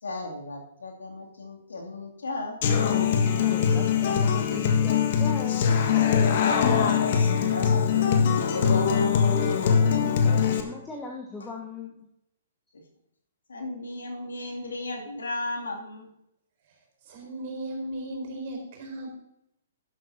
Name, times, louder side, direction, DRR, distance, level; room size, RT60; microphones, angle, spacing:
voice 1, 0.0-2.6 6.6-9.4 11.4-11.5 13.5-16.1, left 2 dB, 70° left, 0 dB, 2.6 m, -35 dB
Human voice / Acoustic guitar, 2.6-10.6, left 7 dB, 45° left, 1.5 m, -22 dB
voice 2, 3.4-5.8 10.0-12.0, left 3 dB, 10° left, 0 dB, 1.2 m, -38 dB
voice 3, 17.0-19.1, right 1 dB, 45° right, 2 dB, 4.5 m, -36 dB
12.5 x 11.0 x 2.8 m, 0.79 s
figure-of-eight pair, 120°, 0 cm